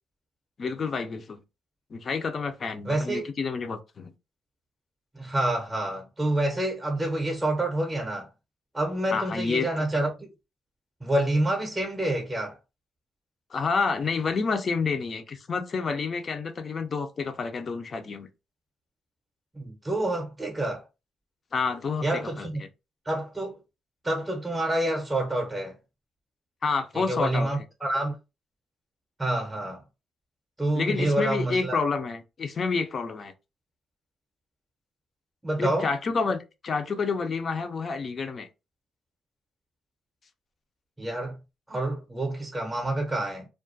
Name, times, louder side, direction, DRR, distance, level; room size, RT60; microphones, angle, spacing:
voice 1, 0.6-1.4 1.9-4.1 9.1-9.7 13.5-18.3 21.5-22.5 26.6-27.5 30.7-33.3 35.6-38.5, left 4 dB, 45° left, 0.4 m, -29 dB
voice 2, 2.8-3.3 5.1-8.3 8.7-10.3 11.0-12.6 19.6-20.8 22.0-22.6 23.1-23.6 24.0-25.7 26.9-28.1 29.2-29.8 30.6-31.8 35.4-35.9 41.0-41.4 41.7-43.5, right 1 dB, 10° right, 0.6 m, -28 dB
2.3 x 2.1 x 2.5 m
cardioid pair, 90°, 0 cm